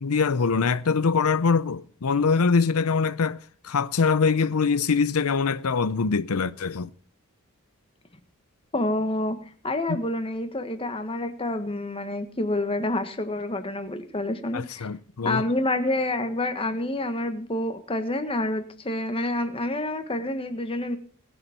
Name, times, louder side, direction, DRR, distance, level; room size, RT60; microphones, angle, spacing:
voice 1, 0.0-3.4 3.6-6.9 14.5-15.4, left 5 dB, 85° left, 0.6 m, -23 dB
voice 2, 8.7-9.4 9.6-14.9 15.2-21.0, left 1 dB, 25° left, 1.6 m, -28 dB
20.5 x 7.1 x 6.0 m
head